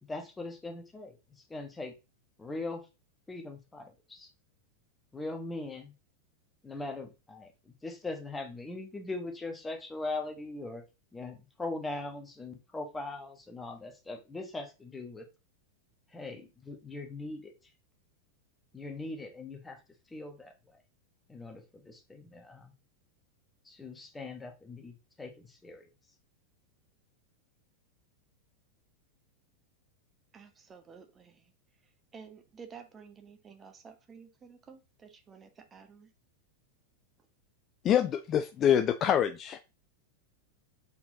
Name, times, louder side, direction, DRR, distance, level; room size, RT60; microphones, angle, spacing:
voice 1, 0.0-1.9 2.4-2.8 3.3-4.3 5.1-5.9 6.6-10.8 11.1-15.3 16.1-17.5 18.7-19.8 20.1-20.8 21.3-22.7 23.6-25.9, left 2 dB, 10° left, 4 dB, 1.0 m, -40 dB
voice 2, 30.3-31.5 32.1-36.1, right 6 dB, 20° right, 6 dB, 0.8 m, -52 dB
voice 3, 37.8-39.6, left 9 dB, 30° left, 8 dB, 0.3 m, -25 dB
4.3 x 3.9 x 2.7 m, 0.28 s
figure-of-eight pair, 90°, 0 cm